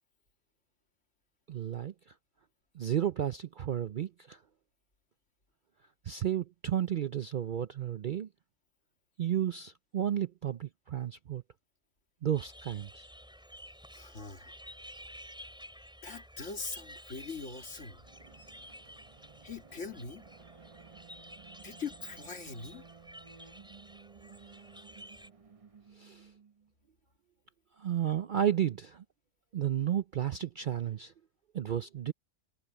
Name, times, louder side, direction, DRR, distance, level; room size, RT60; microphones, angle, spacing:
voice 1, 1.5-1.9 2.7-4.4 6.0-8.3 9.2-11.4 12.2-13.1 26.0-26.3 27.8-29.0 29.5-31.1 31.5-32.1, right 10 dB, 55° right, 0.6 m, -32 dB
sound 1, 12.3-25.3, equal, 5° right, 5.7 m, -52 dB
voice 2, 13.9-14.5 16.0-18.0 19.4-20.3 21.6-22.8 28.1-28.2, left 4 dB, 65° left, 2.7 m, -42 dB
sound 2, 17.5-26.7, right 6 dB, 30° right, 0.9 m, -56 dB
omnidirectional pair, 1.4 m